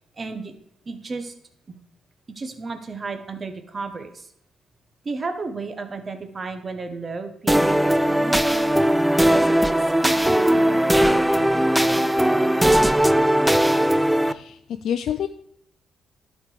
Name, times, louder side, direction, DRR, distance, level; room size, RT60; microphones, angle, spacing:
voice 1, 0.1-0.5 0.8-1.3 1.7-1.8 2.3-4.3 5.0-8.8 9.3-12.5, right 4 dB, 35° right, 7 dB, 1.2 m, -33 dB
sound 1, 7.5-14.3, right 1 dB, 5° right, 0.4 m, -19 dB
voice 2, 14.2-15.3, left 9 dB, 70° left, 8 dB, 0.4 m, -28 dB
11.0 x 4.5 x 5.0 m, 0.71 s
cardioid pair, 90°, 0 cm